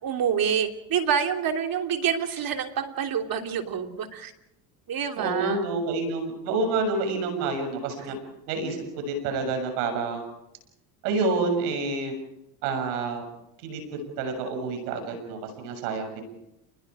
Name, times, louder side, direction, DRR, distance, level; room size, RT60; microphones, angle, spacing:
voice 1, 0.0-4.3 4.9-5.6, right 8 dB, 50° right, 6 dB, 3.0 m, -27 dB
voice 2, 5.2-8.2 8.5-10.3 11.0-12.1 12.6-13.2 13.6-16.2, right 3 dB, 85° right, 6 dB, 7.4 m, -28 dB
29.5 x 21.0 x 5.0 m, 0.83 s
supercardioid pair, 90°, 45 cm